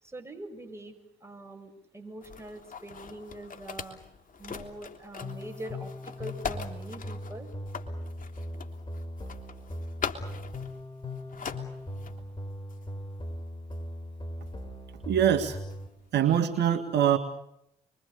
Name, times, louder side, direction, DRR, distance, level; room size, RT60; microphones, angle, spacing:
voice 1, 0.0-4.0 4.4-7.5, right 1 dB, 15° right, 4 dB, 7.7 m, -43 dB
sound 1, 2.2-12.3 12.7-12.9 13.7-13.8 14.5-14.6 15.7-16.0, left 6 dB, 45° left, 3.1 m, -41 dB
sound 2, 5.2-15.9, left 1 dB, 25° left, 6.8 m, -39 dB
voice 2, 15.1-15.6 16.1-17.2, right 9 dB, 60° right, 6 dB, 2.2 m, -23 dB
30.0 x 23.5 x 6.8 m, 0.80 s
hypercardioid pair, 45°, 20 cm